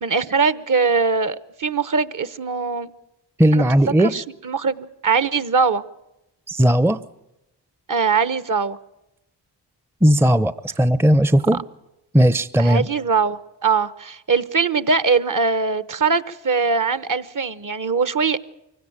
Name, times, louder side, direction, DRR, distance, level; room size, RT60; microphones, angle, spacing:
voice 1, 0.0-2.9 3.5-3.7 4.1-5.8 7.9-8.8 12.6-18.4, right 5 dB, 45° right, 1.1 m, -21 dB
voice 2, 3.4-4.1 6.5-7.0 10.0-11.7 12.1-12.9, equal, 5° right, 0.7 m, -16 dB
24.0 x 17.0 x 8.9 m
supercardioid pair, 45°, 45 cm